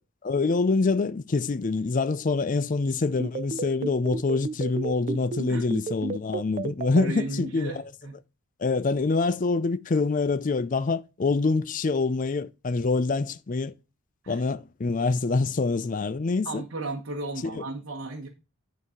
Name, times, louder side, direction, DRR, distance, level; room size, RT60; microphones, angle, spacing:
voice 1, 0.2-7.8 8.6-13.7 14.3-16.6, left 3 dB, 35° left, 0.4 m, -25 dB
sound 1, 3.2-7.0, right 4 dB, 35° right, 0.3 m, -31 dB
voice 2, 7.0-8.2 14.2-14.4 16.4-18.3, right 2 dB, 55° right, 1.0 m, -35 dB
9.7 x 4.0 x 4.9 m
head